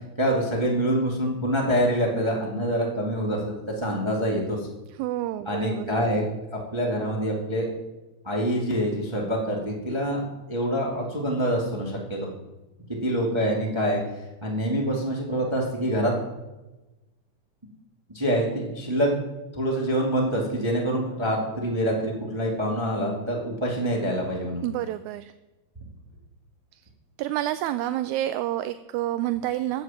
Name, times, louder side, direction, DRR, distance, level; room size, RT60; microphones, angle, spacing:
voice 1, 0.2-4.7 5.5-6.2 6.5-7.7 8.2-12.3 13.0-14.0 14.4-16.1 18.1-19.1 19.5-24.6, equal, 10° right, -2 dB, 2.0 m, -26 dB
voice 2, 5.0-5.9 24.6-25.3 27.2-29.8, right 13 dB, 85° right, 12 dB, 1.9 m, -28 dB
14.0 x 6.4 x 8.8 m, 1.1 s
omnidirectional pair, 3.4 m